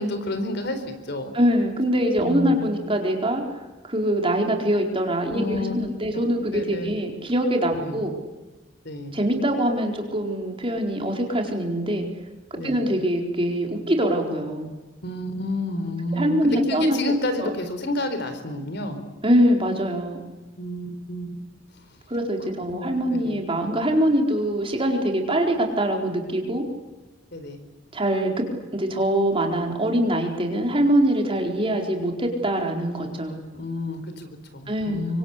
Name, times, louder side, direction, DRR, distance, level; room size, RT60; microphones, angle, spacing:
voice 1, 0.0-1.3 2.2-2.6 5.3-5.8 6.1-6.9 7.8-8.0 8.8-9.2 12.5-12.8 15.0-19.0 20.6-21.4 22.7-23.4 27.3-27.6 33.5-35.2, left 1 dB, 60° left, 9 dB, 4.3 m, -30 dB
voice 2, 1.3-8.1 9.1-12.1 12.5-14.7 16.1-17.0 17.4-17.5 19.2-20.2 22.1-26.6 27.9-28.3 28.7-33.4 34.7-35.2, equal, 30° right, 2 dB, 4.4 m, -23 dB
26.0 x 25.0 x 8.4 m, 1.1 s
head